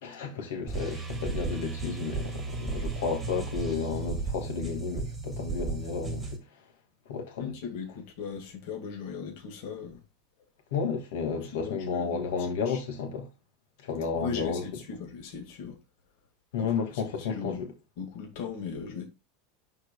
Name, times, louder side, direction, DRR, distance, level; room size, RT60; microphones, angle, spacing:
voice 1, 0.0-6.4 7.1-7.5 10.7-13.3 13.8-14.7 16.5-17.7, left 5 dB, 85° left, 2.5 m, -32 dB
sound 1, 0.7-6.4, right 4 dB, 10° right, 1.6 m, -34 dB
voice 2, 7.4-10.0 11.5-12.3 12.7-12.8 14.2-15.8 16.6-16.7 17.3-17.6 18.0-19.0, left 6 dB, 55° left, 2.3 m, -38 dB
12.0 x 4.9 x 2.4 m
supercardioid pair, 170°, 0 cm